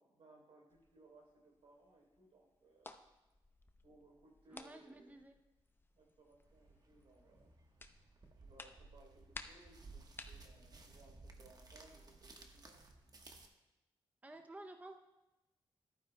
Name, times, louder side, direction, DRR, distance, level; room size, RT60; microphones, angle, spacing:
voice 1, 0.0-3.0 3.8-5.2 5.9-7.5 8.4-12.9, right 2 dB, 75° right, -1 dB, 3.5 m, -64 dB
sound 1, 0.7-12.0, left 2 dB, 20° left, 0.8 m, -58 dB
voice 2, 4.5-5.3 14.2-15.0, right 2 dB, 15° right, 5 dB, 0.6 m, -52 dB
sound 2, 6.4-13.5, right 3 dB, 40° right, 1.2 m, -58 dB
14.0 x 12.0 x 2.2 m, 1.0 s
cardioid pair, 60°, 10 cm